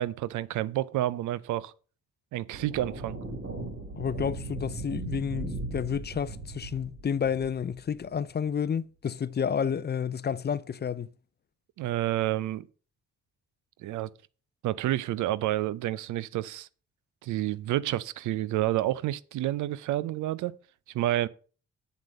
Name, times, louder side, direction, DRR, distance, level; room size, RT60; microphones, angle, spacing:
voice 1, 0.0-1.7 2.3-3.2 11.8-12.7 13.8-14.1 14.6-16.7 17.2-20.6 20.9-21.3, right 14 dB, 80° right, 0.5 m, -29 dB
sound 1, 2.5-8.2, right 2 dB, 50° right, 3.8 m, -38 dB
voice 2, 4.0-11.1, left 7 dB, 35° left, 0.5 m, -30 dB
7.4 x 7.4 x 5.2 m
supercardioid pair, 60°, 30 cm